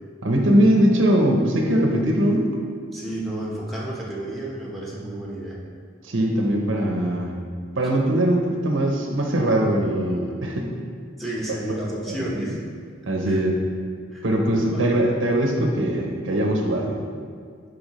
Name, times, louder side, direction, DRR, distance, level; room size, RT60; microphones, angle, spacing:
voice 1, 0.2-2.5 6.0-7.3 7.8-10.7 12.0-12.5 13.1-13.6 14.2-17.0, right 1 dB, 70° right, 1 dB, 0.9 m, -21 dB
voice 2, 2.9-5.6 11.2-12.6 13.3-13.4 14.1-14.2 14.5-14.8, right 1 dB, ahead, -5 dB, 1.3 m, -31 dB
12.0 x 4.6 x 3.2 m, 2.1 s
head